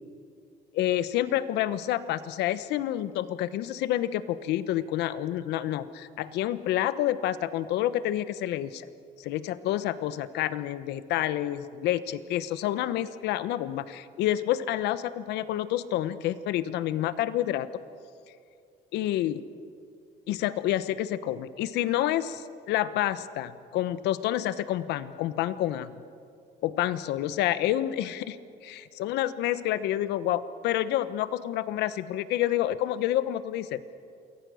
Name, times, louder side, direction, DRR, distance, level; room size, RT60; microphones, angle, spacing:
voice 1, 0.7-8.9 9.2-17.7 18.9-19.4 20.3-25.9 26.6-28.4 28.6-33.8, left 13 dB, 85° left, 14 dB, 1.0 m, -28 dB
28.0 x 22.0 x 6.4 m, 2.4 s
cardioid pair, 110°, 17 cm